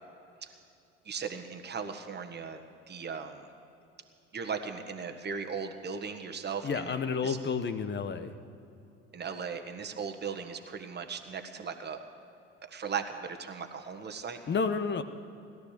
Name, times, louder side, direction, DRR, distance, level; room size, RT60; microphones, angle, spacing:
voice 1, 1.0-2.6 2.9-3.5 4.3-6.9 7.2-7.4 9.1-12.0 12.6-14.4, right 6 dB, 30° right, 6 dB, 1.5 m, -37 dB
voice 2, 6.6-8.3 14.5-15.0, left 5 dB, 30° left, 10 dB, 1.0 m, -30 dB
17.0 x 12.0 x 6.8 m, 2.7 s
hypercardioid pair, 65°, 35 cm